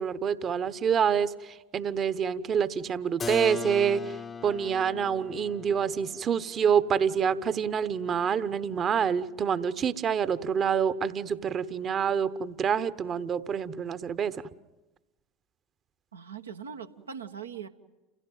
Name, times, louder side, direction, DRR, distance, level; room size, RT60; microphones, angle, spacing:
voice 1, 0.0-14.4, right 7 dB, 40° right, 15 dB, 1.0 m, -27 dB
Keyboard (musical), 3.2-8.8, left 5 dB, 25° left, 0.8 m, -40 dB
voice 2, 16.1-17.7, right 7 dB, 85° right, 7 dB, 1.2 m, -40 dB
28.5 x 16.5 x 9.3 m, 1.1 s
figure-of-eight pair, 75°, 0 cm